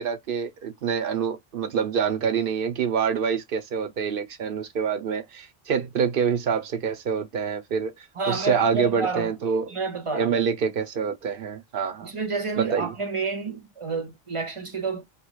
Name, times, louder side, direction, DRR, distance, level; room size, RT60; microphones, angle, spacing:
voice 1, 0.0-9.7 10.1-12.1 12.6-12.9, right 6 dB, 65° right, 0.8 m, -26 dB
voice 2, 8.2-9.3 9.7-10.5 12.0-15.0, right 4 dB, 35° right, 0.9 m, -29 dB
3.0 x 2.7 x 2.3 m
omnidirectional pair, 1.0 m